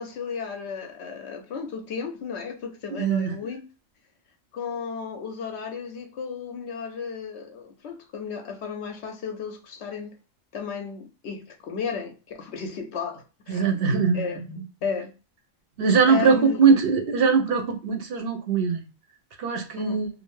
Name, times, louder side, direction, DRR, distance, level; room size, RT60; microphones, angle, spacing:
voice 1, 0.0-3.7 4.5-10.1 10.5-13.7 14.1-15.1 16.1-16.6 19.8-20.0, left 5 dB, 65° left, 0.7 m, -34 dB
voice 2, 2.9-3.3 13.5-14.2 15.8-18.8 19.4-20.1, right 5 dB, 55° right, 0.7 m, -21 dB
2.6 x 2.1 x 3.0 m
omnidirectional pair, 1.4 m